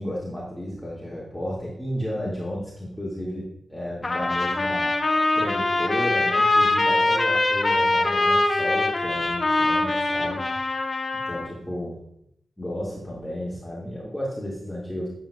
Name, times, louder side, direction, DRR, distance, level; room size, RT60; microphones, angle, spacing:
voice 1, 0.0-5.0 5.3-10.4 11.3-12.0 12.6-15.1, equal, 5° left, -7 dB, 2.2 m, -32 dB
Trumpet, 4.0-11.5, left 2 dB, 40° left, 0.9 m, -23 dB
9.1 x 7.1 x 2.4 m, 0.77 s
supercardioid pair, 45°, 0 cm